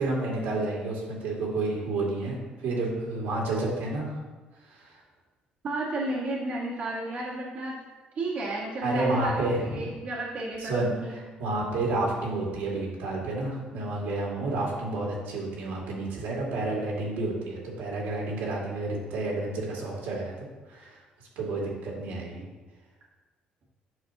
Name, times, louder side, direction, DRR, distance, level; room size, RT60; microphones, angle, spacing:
voice 1, 0.0-4.2 4.7-5.0 8.8-9.8 10.6-21.0 21.4-22.4, right 2 dB, 85° right, -3 dB, 2.1 m, -30 dB
voice 2, 5.6-7.9 8.1-11.1, right 1 dB, 45° right, -5 dB, 1.4 m, -32 dB
8.9 x 6.0 x 2.9 m, 1.3 s
cardioid pair, 140°, 3 cm